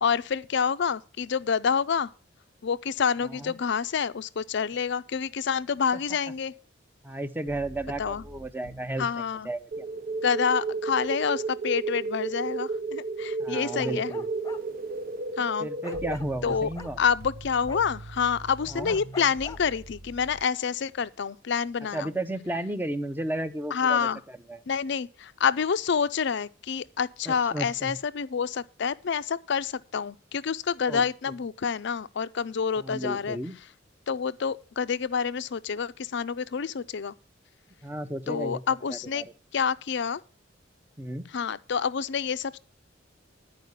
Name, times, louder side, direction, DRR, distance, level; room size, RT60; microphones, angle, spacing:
voice 1, 0.0-2.1 2.6-6.5 8.0-8.2 9.0-9.5 10.2-14.1 15.4-15.7 16.4-16.7 17.0-22.1 23.7-24.2 24.7-33.4 34.1-37.1 38.3-39.2 39.5-40.2 41.3-42.6, left 6 dB, 65° left, 0.5 m, -28 dB
voice 2, 3.2-3.5 5.9-6.2 7.0-9.8 13.4-14.3 15.6-17.0 18.7-19.0 21.9-24.6 27.2-28.0 30.9-31.3 32.8-33.6 37.8-38.6 38.9-39.3 41.0-41.3, right 1 dB, 10° right, 0.7 m, -34 dB
sound 1, 7.5-9.1 15.9-20.4, right 1 dB, 90° right, 0.9 m, -44 dB
sound 2, 9.7-16.1, right 3 dB, 50° right, 0.6 m, -32 dB
Bark, 13.8-14.6 15.8-16.9 17.7-17.8 18.9-19.6, left 3 dB, 15° left, 0.9 m, -41 dB
11.0 x 4.9 x 8.0 m
head